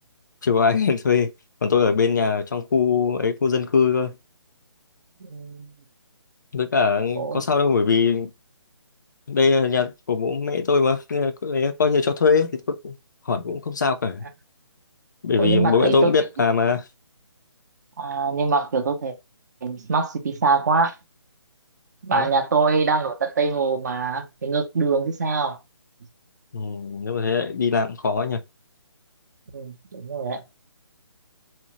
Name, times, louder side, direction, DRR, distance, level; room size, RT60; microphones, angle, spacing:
voice 1, 0.4-1.3 1.6-4.1 6.5-8.3 9.3-12.9 13.3-14.2 15.2-16.8 22.2-22.3 26.5-28.4, left 5 dB, 40° left, 0.4 m, -21 dB
voice 2, 5.2-5.7 7.2-7.4 15.4-16.1 18.0-19.2 19.6-21.0 22.0-25.6 29.5-30.4, right 4 dB, 40° right, 0.5 m, -23 dB
2.7 x 2.0 x 2.9 m
hypercardioid pair, 165°, 15 cm